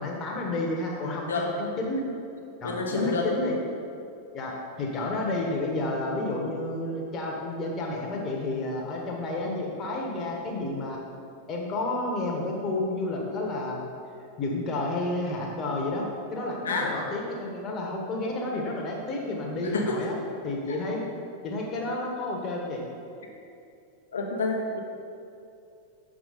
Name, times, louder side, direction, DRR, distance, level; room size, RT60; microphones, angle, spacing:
voice 1, 0.0-2.0 2.6-3.6 4.3-4.5 4.8-11.0 11.5-13.9 14.4-16.0 16.3-20.1 20.4-21.0 21.4-22.8, left 2 dB, 30° left, -1 dB, 1.2 m, -31 dB
voice 2, 2.6-3.3 16.6-16.9 19.6-20.0 20.7-20.8 23.2-23.3 24.1-24.8, left 3 dB, 65° left, 1 dB, 0.9 m, -28 dB
6.8 x 5.0 x 3.9 m, 2.5 s
figure-of-eight pair, 90°, 0 cm